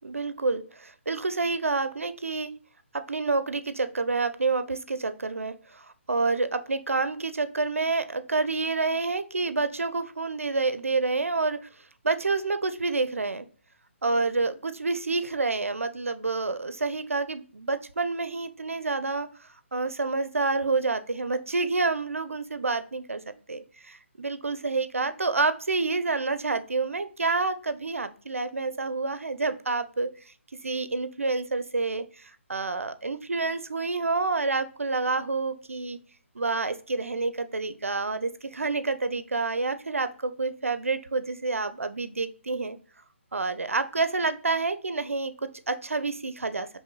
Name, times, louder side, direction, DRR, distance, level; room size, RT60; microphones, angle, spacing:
voice 1, 0.0-2.5 2.9-11.7 12.0-13.5 14.0-23.2 23.5-30.3 30.6-36.0 36.4-42.8 43.3-46.7, right 3 dB, 85° right, 11 dB, 0.4 m, -28 dB
5.4 x 3.0 x 2.2 m, 0.41 s
figure-of-eight pair, 145°, 7 cm